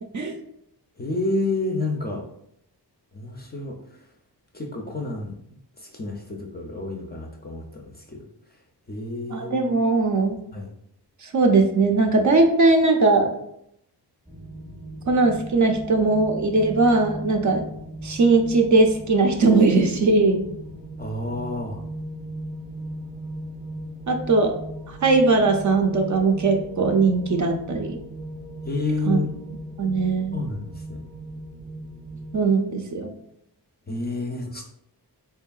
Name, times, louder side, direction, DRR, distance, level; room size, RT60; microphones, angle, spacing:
voice 1, 1.0-2.2 3.1-3.8 4.5-5.3 5.8-8.2 8.9-9.7 10.5-10.7 21.0-21.8 28.7-29.3 30.3-31.0 33.9-34.7, left 2 dB, 25° left, 1 dB, 0.4 m, -29 dB
voice 2, 9.3-10.4 11.2-13.4 15.1-17.6 18.0-20.4 24.1-24.5 25.0-28.0 29.1-29.2 29.8-30.4 32.3-33.1, right 3 dB, 45° right, 4 dB, 0.4 m, -19 dB
sound 1, 14.2-32.4, right 1 dB, 10° right, 0.7 m, -38 dB
3.6 x 3.4 x 2.3 m, 0.75 s
wide cardioid pair, 145°, 42 cm